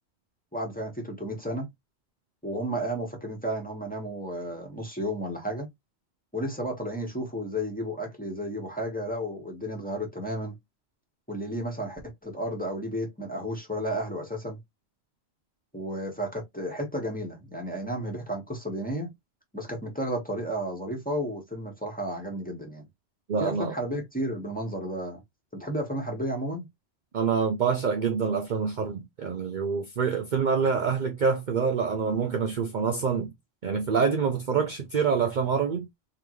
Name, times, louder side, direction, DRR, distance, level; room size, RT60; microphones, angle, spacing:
voice 1, 0.5-1.7 2.4-5.7 6.3-10.5 11.3-14.6 15.7-19.1 19.5-22.8 23.4-25.2 25.5-26.7, equal, 5° left, 1.6 m, -32 dB
voice 2, 23.3-23.7 27.1-33.3 33.6-35.9, right 5 dB, 50° right, 0.7 m, -26 dB
3.8 x 3.4 x 3.1 m
omnidirectional pair, 1.2 m